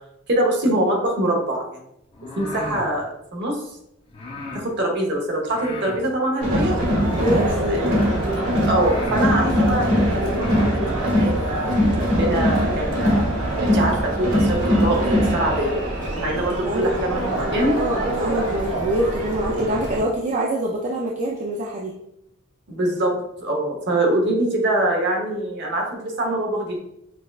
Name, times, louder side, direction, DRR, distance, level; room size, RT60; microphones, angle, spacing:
voice 1, 0.3-1.8 2.4-3.6 4.5-6.9 7.7-8.4 8.7-13.2 13.6-15.8 16.2-17.7 22.7-26.8, right 1 dB, 55° right, 0 dB, 0.9 m, -24 dB
sound 1, 2.1-2.9 4.1-4.6 5.5-6.0 7.0-7.6 8.3-8.4 8.7-9.3 10.1-10.7, left 2 dB, 25° left, 0.6 m, -35 dB
Crowd, 6.4-20.0, equal, 80° right, 1.2 m, -22 dB
voice 2, 7.0-8.0 16.5-16.9 17.8-22.0, right 1 dB, 35° right, -3 dB, 0.4 m, -25 dB
6.1 x 2.2 x 2.4 m, 0.80 s
head